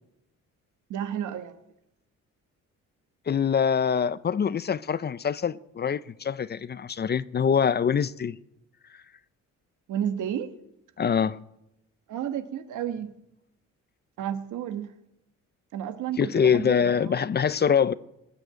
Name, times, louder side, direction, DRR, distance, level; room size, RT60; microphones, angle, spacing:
voice 1, 0.9-1.6 9.9-10.5 12.1-13.1 14.2-14.9 15.7-17.2, right 9 dB, 80° right, 1.3 m, -32 dB
voice 2, 3.3-8.4 11.0-11.4 16.2-17.9, left 7 dB, 35° left, 0.5 m, -24 dB
19.0 x 7.7 x 9.3 m
cardioid pair, 90°, 30 cm